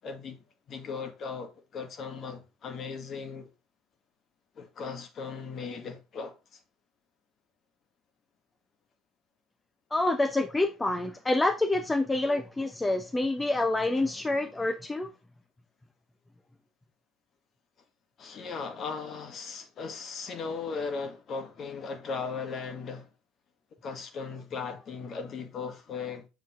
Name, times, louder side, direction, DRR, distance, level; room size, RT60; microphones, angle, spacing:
voice 1, 0.0-3.5 4.6-6.6 14.1-14.2 18.2-23.1 23.8-26.3, left 5 dB, 45° left, 1.8 m, -37 dB
voice 2, 9.9-15.1, left 2 dB, 15° left, 0.8 m, -27 dB
7.5 x 6.7 x 2.6 m
hypercardioid pair, 70°, 0 cm